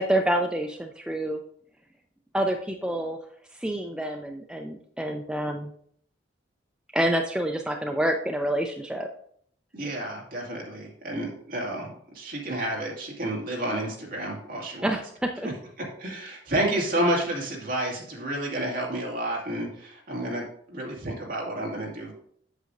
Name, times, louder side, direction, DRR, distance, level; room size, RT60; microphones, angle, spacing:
voice 1, 0.0-1.4 2.3-3.2 3.5-5.7 6.9-9.1 14.8-15.5, right 1 dB, 5° right, 3 dB, 0.4 m, -27 dB
voice 2, 9.7-15.0 15.8-22.1, right 1 dB, 50° right, -2 dB, 2.1 m, -30 dB
8.0 x 6.8 x 2.5 m, 0.62 s
head